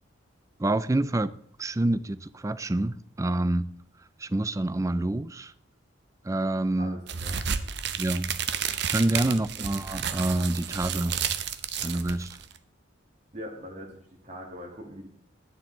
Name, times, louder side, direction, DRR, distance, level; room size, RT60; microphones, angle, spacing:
voice 1, 0.6-1.3 1.6-3.7 4.2-5.5 6.2-7.0 8.0-8.3 8.9-11.2 11.8-12.4, right 1 dB, 15° right, 0.3 m, -27 dB
voice 2, 6.8-7.5 9.3-9.7 13.3-15.1, equal, 35° right, 2.0 m, -42 dB
sound 1, 7.1-12.6, right 8 dB, 55° right, 0.7 m, -31 dB
11.5 x 10.5 x 3.9 m
head